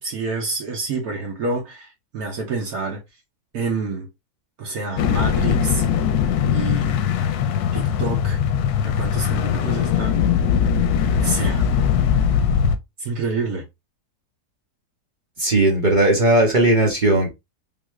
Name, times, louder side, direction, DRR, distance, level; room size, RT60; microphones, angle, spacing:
voice 1, 0.0-3.0 3.5-4.1 4.6-5.8 6.5-7.0 7.7-8.4 8.8-10.2 11.2-11.7 13.0-13.7, right 3 dB, 70° right, 1.3 m, -28 dB
sound 1, 5.0-12.8, left 8 dB, 75° left, 1.0 m, -20 dB
voice 2, 15.4-17.3, right 1 dB, 40° right, 0.8 m, -17 dB
3.5 x 2.6 x 3.0 m
omnidirectional pair, 1.7 m